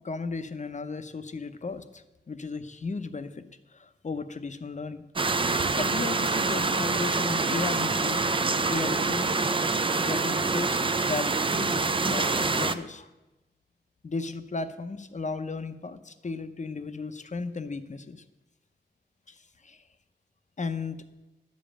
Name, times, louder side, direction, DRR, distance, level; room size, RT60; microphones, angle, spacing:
voice 1, 0.0-3.4 3.7-5.0 5.8-8.4 8.7-9.5 10.0-11.3 11.6-13.1 14.0-18.2 19.3-19.8 20.6-21.0, left 4 dB, 40° left, 11 dB, 0.7 m, -35 dB
sound 1, 5.2-12.8, right 3 dB, 30° right, 0.5 m, -26 dB
11.5 x 5.2 x 8.7 m, 1.0 s
wide cardioid pair, 130°, 19 cm